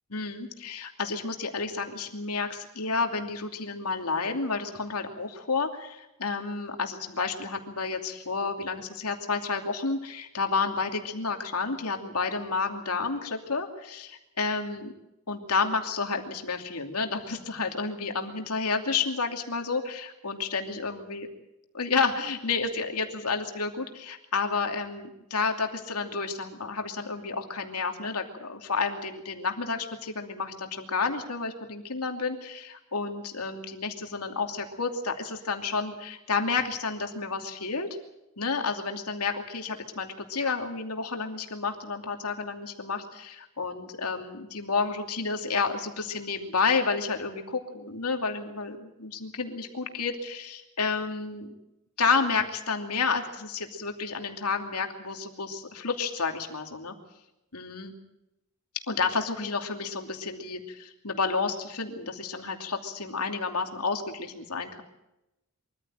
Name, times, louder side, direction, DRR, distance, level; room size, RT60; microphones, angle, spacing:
voice 1, 0.1-14.9 15.3-21.3 21.7-37.9 38.4-51.5 52.0-56.9 57.5-57.9 58.9-64.8, left 4 dB, 85° left, 4 dB, 2.7 m, -30 dB
23.5 x 14.5 x 8.9 m, 0.92 s
head